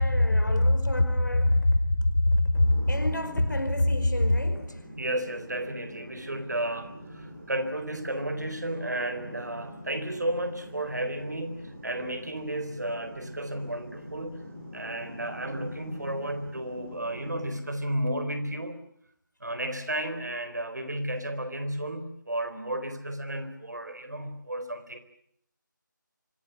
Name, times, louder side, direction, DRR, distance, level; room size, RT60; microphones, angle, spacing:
voice 1, 0.0-4.8, left 1 dB, 65° left, 10 dB, 5.1 m, -23 dB
Barrow Guerney Atmosfear, 2.5-17.5, equal, 40° right, 7.4 m, -44 dB
voice 2, 5.0-14.5 14.7-18.8 19.4-25.0, right 1 dB, 60° right, 10 dB, 4.1 m, -33 dB
25.5 x 19.0 x 9.9 m, 0.70 s
figure-of-eight pair, 160°, 11 cm